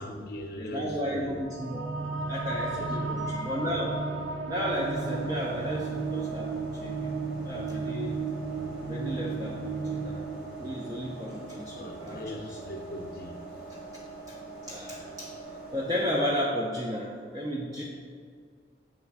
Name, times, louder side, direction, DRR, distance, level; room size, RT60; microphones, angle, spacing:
voice 1, 0.0-1.4 2.7-3.2 11.8-13.4, left 1 dB, 55° left, 3 dB, 0.7 m, -40 dB
voice 2, 0.6-4.0 4.4-7.1 7.4-8.1 8.8-10.2 10.6-12.6 14.6-15.3 15.7-17.8, equal, 20° right, -5 dB, 0.5 m, -33 dB
sound 1, 1.4-12.3, right 4 dB, 85° right, 0.4 m, -34 dB
sound 2, 4.7-16.4, right 3 dB, 45° right, 1.2 m, -43 dB
7.2 x 3.1 x 4.6 m, 2.1 s
head